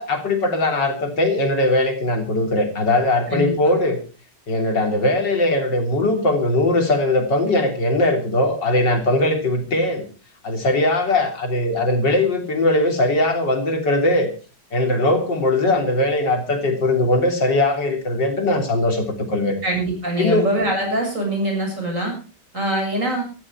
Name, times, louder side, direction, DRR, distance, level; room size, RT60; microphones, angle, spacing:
voice 1, 0.0-4.0 4.5-10.1 10.4-14.3 14.7-19.6 20.2-20.5, left 2 dB, 85° left, 5 dB, 3.9 m, -20 dB
voice 2, 19.6-22.2 22.5-23.2, right 1 dB, 45° right, 2 dB, 7.6 m, -23 dB
16.5 x 14.0 x 4.8 m, 0.37 s
omnidirectional pair, 1.9 m